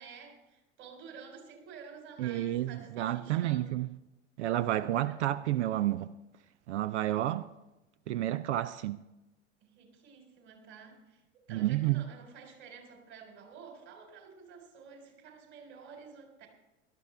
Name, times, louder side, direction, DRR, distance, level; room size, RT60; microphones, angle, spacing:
voice 1, 0.0-3.8 4.4-4.5 5.0-5.2 9.6-11.2 11.5-16.5, right 6 dB, 50° right, 4.0 m, -51 dB
voice 2, 2.2-3.9 4.4-6.1 6.7-7.5 8.1-9.0 11.5-12.0, right 14 dB, 70° right, 0.5 m, -30 dB
17.5 x 12.5 x 3.3 m
figure-of-eight pair, 80°, 36 cm